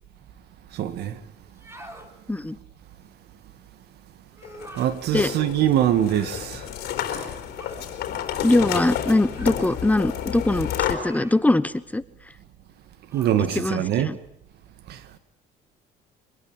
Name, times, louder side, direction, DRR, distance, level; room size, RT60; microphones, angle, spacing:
voice 1, 0.7-1.2 4.8-6.6 13.1-14.1 14.9-15.0, right 11 dB, 75° right, 2.0 m, -23 dB
sound 1, 1.5-2.1 4.3-5.0 7.6-7.9 9.3-9.6 11.0-11.5 13.1-13.5, right 1 dB, 15° right, 3.8 m, -45 dB
sound 2, 4.4-10.9, left 10 dB, 75° left, 3.9 m, -30 dB
voice 2, 8.4-12.0 13.5-14.2, left 2 dB, 10° left, 1.0 m, -22 dB
24.5 x 20.0 x 9.0 m
cardioid pair, 110°, 17 cm